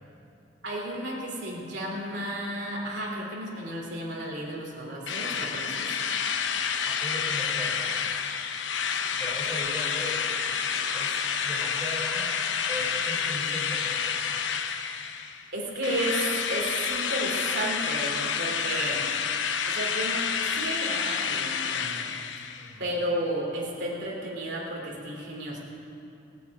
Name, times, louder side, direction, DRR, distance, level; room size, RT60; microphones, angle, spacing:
voice 1, 0.6-5.9 15.5-19.0 19.7-22.2 22.8-25.6, right 1 dB, 65° right, -3 dB, 3.5 m, -33 dB
Drill, 5.1-15.4 15.8-22.7, left 7 dB, 90° left, 0.8 m, -29 dB
voice 2, 6.9-7.8 9.1-10.3 10.9-11.2 11.4-14.4 18.9-19.0 22.6-22.9, left 1 dB, ahead, -5 dB, 3.8 m, -38 dB
17.5 x 9.2 x 8.6 m, 2.7 s
head